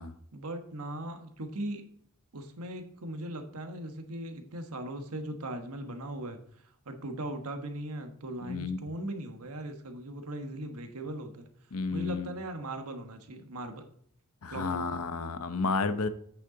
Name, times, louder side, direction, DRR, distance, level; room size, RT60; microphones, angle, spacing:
voice 1, 0.3-2.0 2.3-6.4 6.8-11.5 11.9-13.9 14.5-15.0, right 1 dB, 85° right, 6 dB, 1.2 m, -39 dB
voice 2, 8.4-8.9 11.7-12.3 14.4-16.1, left 4 dB, 75° left, 11 dB, 0.8 m, -31 dB
8.3 x 6.7 x 3.9 m, 0.66 s
head